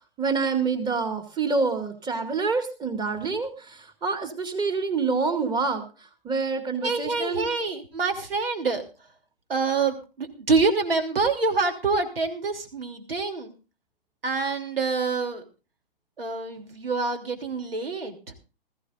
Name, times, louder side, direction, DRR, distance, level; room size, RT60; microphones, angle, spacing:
voice 1, 0.2-5.8 6.2-7.5, right 4 dB, 15° right, 7 dB, 2.1 m, -27 dB
voice 2, 6.8-8.8 9.5-13.5 14.2-15.4 16.2-18.3, right 4 dB, 70° right, 6 dB, 3.1 m, -26 dB
19.5 x 15.0 x 2.5 m, 0.32 s
figure-of-eight pair, 120°, 30 cm